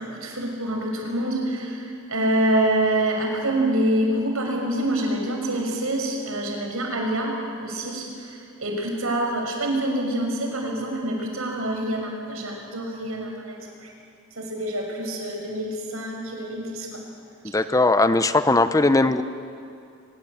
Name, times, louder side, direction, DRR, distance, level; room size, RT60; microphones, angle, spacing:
voice 1, 0.0-7.3 7.6-13.9 14.4-17.0, right 1 dB, 85° right, 1 dB, 5.9 m, -26 dB
voice 2, 17.4-19.2, left 2 dB, 15° left, 11 dB, 0.7 m, -19 dB
24.0 x 22.0 x 8.6 m, 2.5 s
head